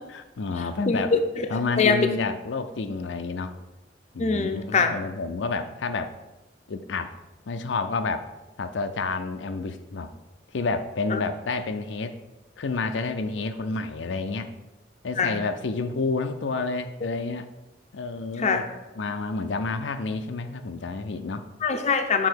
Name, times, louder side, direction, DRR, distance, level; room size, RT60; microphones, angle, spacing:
voice 1, 0.1-1.1 1.5-3.6 4.1-6.1 6.7-7.1 7.5-8.3 8.6-10.1 10.5-12.1 12.6-14.6 15.0-17.5 17.9-18.6 19.0-21.4, left 3 dB, 85° left, 8 dB, 0.5 m, -29 dB
voice 2, 0.9-2.0 4.2-4.9 11.1-11.2 15.2-15.4 17.0-17.1 18.4-18.6 21.6-22.3, left 4 dB, 40° left, 6 dB, 0.6 m, -23 dB
6.8 x 3.7 x 6.3 m, 1.0 s
head